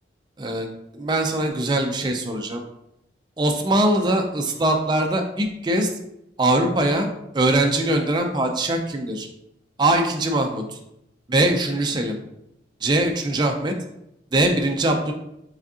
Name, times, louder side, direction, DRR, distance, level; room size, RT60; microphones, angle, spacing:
voice 1, 0.4-0.7 0.9-2.6 3.4-5.9 6.4-7.1 7.3-9.3 9.8-10.8 11.3-12.2 12.8-13.7 14.3-15.1, right 1 dB, 25° right, 3 dB, 0.4 m, -22 dB
4.9 x 3.5 x 2.7 m, 0.83 s
head